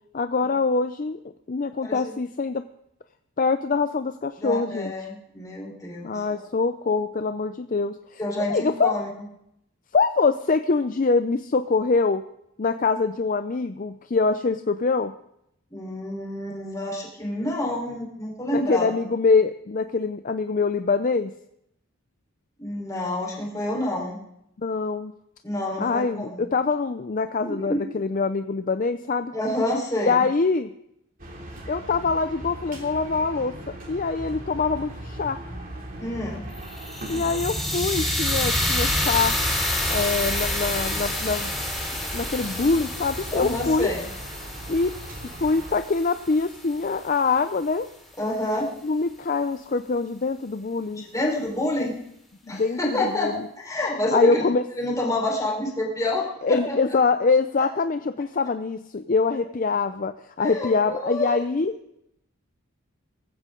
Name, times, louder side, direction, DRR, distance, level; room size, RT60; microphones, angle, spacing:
voice 1, 0.1-1.2 1.5-2.6 3.4-4.9 6.0-8.2 8.5-8.9 9.9-12.2 12.6-15.1 18.5-21.3 24.6-25.1 25.8-29.3 30.0-30.7 31.7-35.4 37.1-39.3 39.9-41.5 42.1-43.9 44.7-44.9 45.4-47.9 48.8-51.0 52.5-53.5 54.1-54.6 56.4-60.1 60.4-61.7, left 4 dB, 40° left, 9 dB, 0.5 m, -24 dB
voice 2, 1.8-2.1 4.4-6.5 8.2-9.1 15.7-18.9 22.6-24.2 25.4-26.4 27.4-27.9 29.3-30.2 36.0-36.4 43.3-44.1 48.2-48.7 50.9-51.9 52.5-54.4 54.8-56.8 60.4-61.3, left 1 dB, 15° left, -2 dB, 4.2 m, -28 dB
sound 1, 31.2-45.7, right 1 dB, 40° right, 2.8 m, -38 dB
sound 2, 36.5-46.7, left 1 dB, ahead, 4.3 m, -28 dB
19.0 x 15.0 x 3.8 m, 0.78 s
head